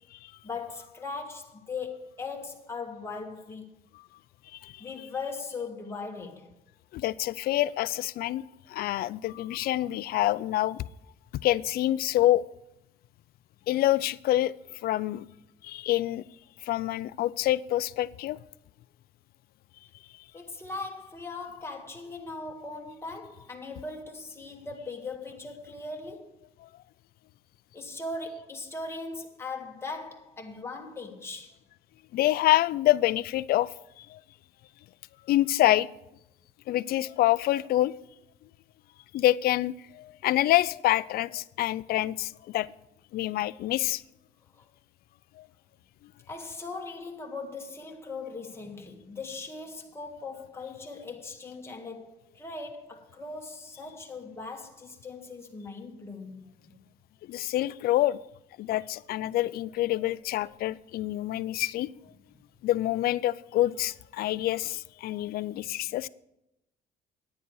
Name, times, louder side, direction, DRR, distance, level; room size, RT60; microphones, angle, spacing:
voice 1, 0.4-3.7 4.8-6.5 20.3-26.4 27.7-31.6 44.5-44.6 46.3-56.8, left 3 dB, 15° left, 1.7 m, -39 dB
voice 2, 6.9-8.4 8.7-10.9 11.4-12.4 13.7-14.5 14.8-15.3 15.6-16.2 16.6-18.4 26.6-26.7 32.1-33.7 34.0-34.2 35.3-35.9 36.7-37.9 39.1-42.7 43.1-44.0 45.4-45.5 57.3-58.2 58.6-61.9 62.6-66.1, left 15 dB, 65° left, 0.4 m, -26 dB
9.9 x 9.6 x 4.7 m
cardioid pair, 110°, 17 cm